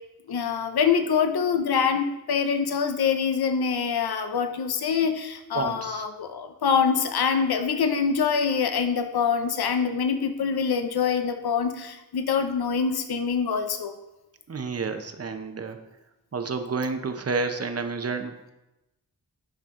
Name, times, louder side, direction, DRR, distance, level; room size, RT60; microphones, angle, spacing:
voice 1, 0.3-13.9, left 6 dB, 90° left, 7 dB, 0.7 m, -25 dB
voice 2, 5.5-6.1 14.5-15.8 16.3-18.5, right 4 dB, 40° right, 7 dB, 0.8 m, -30 dB
10.5 x 5.9 x 3.7 m, 0.99 s
wide cardioid pair, 120°, 37 cm